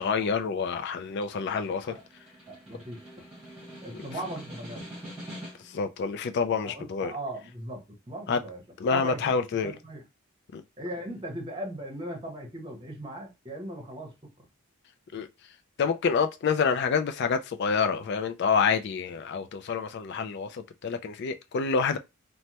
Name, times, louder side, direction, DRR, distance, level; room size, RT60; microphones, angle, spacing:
voice 1, 0.0-1.9 5.6-7.1 8.3-8.4 8.8-9.7 10.5-10.6 15.1-15.3 15.8-22.0, left 5 dB, 50° left, 0.3 m, -27 dB
Snare drum, 0.9-5.8, equal, 5° right, 1.3 m, -45 dB
voice 2, 2.5-3.1 3.8-4.8 6.6-8.6 8.9-9.2 9.6-10.0 10.8-14.4, right 1 dB, 20° right, 0.9 m, -38 dB
3.1 x 2.1 x 2.8 m
head